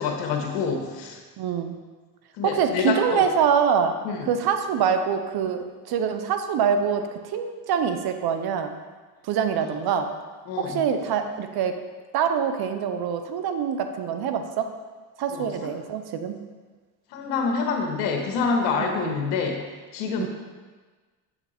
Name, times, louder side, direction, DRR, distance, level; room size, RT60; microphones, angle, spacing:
voice 1, 0.0-1.2 2.3-3.3 4.0-4.3 10.5-10.8 15.3-15.5 17.1-19.6 19.9-20.3, left 5 dB, 80° left, 2 dB, 1.5 m, -27 dB
voice 2, 1.4-1.8 2.4-3.9 4.2-8.7 9.2-10.1 10.6-11.7 12.1-14.7 15.2-16.3 18.8-19.2 20.2-20.3, right 7 dB, 50° right, 7 dB, 0.9 m, -25 dB
8.0 x 5.9 x 4.4 m, 1.4 s
supercardioid pair, 95°, 50 cm